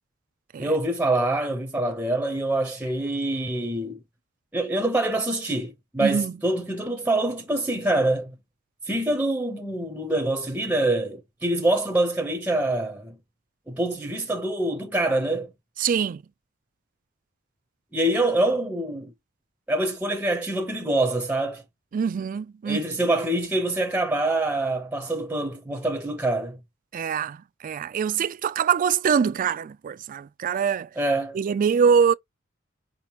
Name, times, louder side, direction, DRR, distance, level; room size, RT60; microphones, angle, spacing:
voice 1, 0.6-4.0 4.5-8.3 8.9-13.2 13.7-15.5 17.9-19.1 19.7-21.6 22.7-26.6 31.0-31.4, right 2 dB, 5° right, 0.7 m, -25 dB
voice 2, 6.0-6.3 15.8-16.2 21.9-22.8 26.9-30.9 31.3-32.1, right 7 dB, 40° right, 0.3 m, -24 dB
4.9 x 2.9 x 3.4 m
head